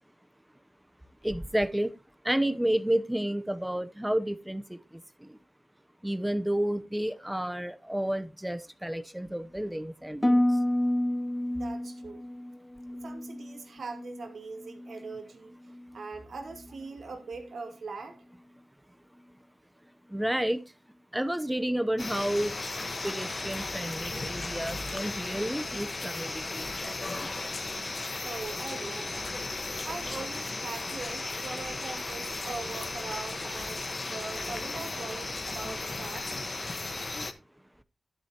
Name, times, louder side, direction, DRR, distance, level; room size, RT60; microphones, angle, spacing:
voice 1, 1.2-1.9 2.2-5.4 6.0-10.6 20.1-20.6 21.1-22.6 23.0-27.3, right 1 dB, 5° right, 0.8 m, -31 dB
Harp, 10.2-14.3 14.6-15.2 15.7-16.0, left 1 dB, 15° left, 0.4 m, -30 dB
voice 2, 11.5-12.2 12.9-15.5 15.9-18.2 28.2-29.3 29.8-36.5, right 4 dB, 80° right, 2.4 m, -41 dB
sound 1, 22.0-37.3, left 3 dB, 45° left, 1.3 m, -35 dB
11.0 x 9.8 x 3.0 m
cardioid pair, 65°, 0 cm